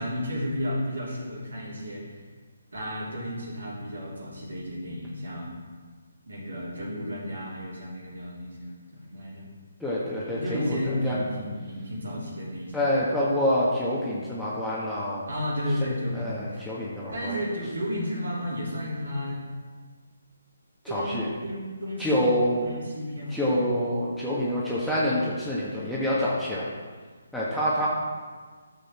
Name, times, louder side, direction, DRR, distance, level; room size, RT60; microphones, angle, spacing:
voice 1, 0.0-2.2 2.7-5.5 6.3-9.4 10.3-13.0 15.3-16.7 17.1-19.4 20.9-22.3 22.6-23.8 27.7-27.9, equal, 70° right, -4 dB, 3.6 m, -33 dB
voice 2, 9.8-11.2 12.7-15.2 16.1-17.4 20.9-21.3 22.0-22.7 23.3-26.7 27.3-27.9, equal, ahead, -9 dB, 1.5 m, -27 dB
13.5 x 7.1 x 4.5 m, 1.5 s
figure-of-eight pair, 145°, 0 cm